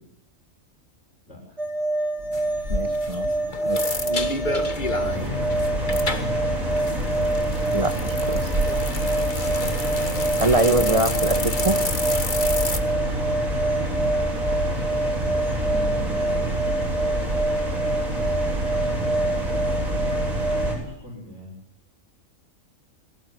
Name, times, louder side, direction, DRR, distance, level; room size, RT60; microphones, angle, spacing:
voice 1, 1.3-1.6 4.8-6.4 12.6-13.0 15.5-16.8 18.9-21.5, left 3 dB, 55° left, -2 dB, 7.1 m, -40 dB
sound 1, 1.6-20.8, right 2 dB, 60° right, 5.6 m, -26 dB
sound 2, 2.2-20.7, right 1 dB, 85° right, 8.4 m, -28 dB
sound 3, 2.3-12.8, left 3 dB, 35° left, 2.0 m, -31 dB
voice 2, 2.7-3.3 3.7-3.8 7.7-8.5 10.4-11.8, right 2 dB, 25° right, 9 dB, 1.8 m, -23 dB
23.5 x 18.0 x 9.6 m, 0.67 s
omnidirectional pair, 1.4 m